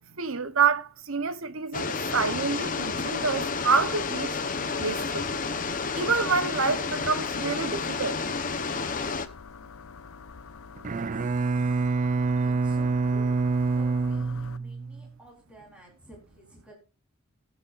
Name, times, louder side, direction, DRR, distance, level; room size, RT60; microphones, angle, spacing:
voice 1, 0.1-4.4 4.8-5.3 5.9-8.2 8.8-8.9, right 5 dB, 70° right, 0.9 m, -27 dB
sound 1, 1.7-9.3, left 4 dB, 40° left, 0.9 m, -30 dB
sound 2, 2.6-14.6, left 5 dB, 75° left, 0.6 m, -46 dB
voice 2, 10.7-11.9 12.4-13.4 13.7-16.7, right 1 dB, 5° right, 3.9 m, -52 dB
Bowed string instrument, 10.8-15.1, right 4 dB, 35° right, 0.4 m, -26 dB
18.5 x 8.1 x 2.5 m
head